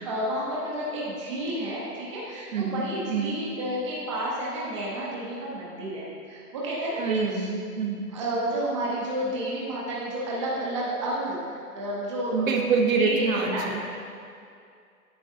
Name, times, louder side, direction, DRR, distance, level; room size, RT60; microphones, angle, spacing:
voice 1, 0.0-7.5 8.1-12.5 13.0-13.8, right 1 dB, 20° right, -6 dB, 0.7 m, -31 dB
voice 2, 2.5-2.8 3.1-3.4 7.0-8.1 12.3-13.8, right 4 dB, 60° right, 2 dB, 0.9 m, -26 dB
9.0 x 6.1 x 2.6 m, 2.4 s
hypercardioid pair, 165°, 45 cm